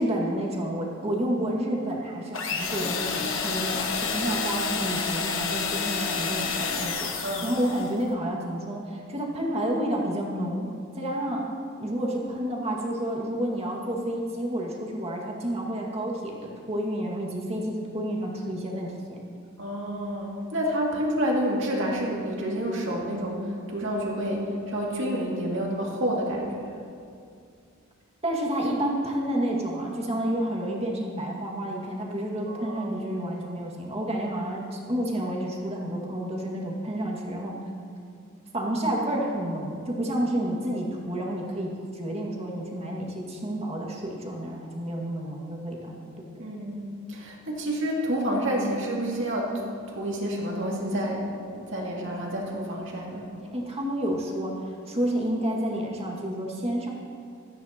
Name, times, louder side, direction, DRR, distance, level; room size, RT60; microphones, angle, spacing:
voice 1, 0.0-7.2 7.4-10.7 11.0-11.5 11.8-19.2 28.2-37.6 38.5-46.3 53.5-56.9, right 1 dB, 30° right, -2 dB, 1.9 m, -30 dB
sound 1, 2.3-8.0, left 5 dB, 70° left, 1.1 m, -29 dB
voice 2, 19.6-26.7 32.4-33.0 46.4-49.6 49.9-53.2, equal, 65° right, -2 dB, 2.4 m, -29 dB
16.5 x 14.0 x 2.9 m, 2.4 s
head